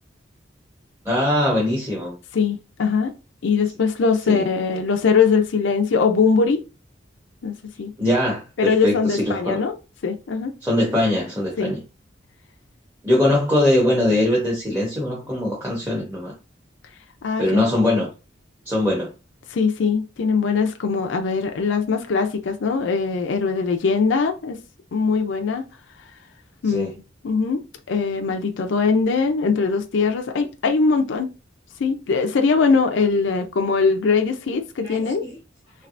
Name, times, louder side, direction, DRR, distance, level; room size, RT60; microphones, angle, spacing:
voice 1, 1.0-2.1 4.3-4.5 8.0-9.6 10.6-11.8 13.0-16.3 17.4-18.1 18.6-19.1 26.7-26.9 34.8-35.4, left 1 dB, 10° right, 0.9 m, -21 dB
voice 2, 2.3-3.1 3.4-6.6 7.4-7.9 8.6-9.7 10.0-10.5 11.6-11.8 17.2-17.6 19.5-24.6 24.9-25.6 26.6-26.9 27.2-27.6 27.9-31.3 31.8-35.2, left 5 dB, 75° left, 0.5 m, -21 dB
3.3 x 3.2 x 2.5 m
head